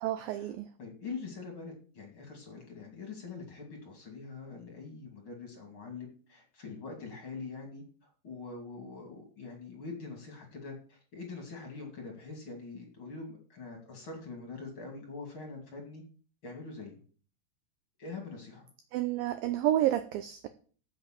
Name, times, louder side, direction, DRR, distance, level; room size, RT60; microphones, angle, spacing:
voice 1, 0.0-0.7 18.9-20.5, right 13 dB, 85° right, 10 dB, 2.0 m, -30 dB
voice 2, 0.8-7.8 8.2-16.0 16.4-16.9 18.0-18.7, left 4 dB, 35° left, 2 dB, 2.5 m, -44 dB
7.8 x 7.7 x 7.3 m, 0.43 s
omnidirectional pair, 4.9 m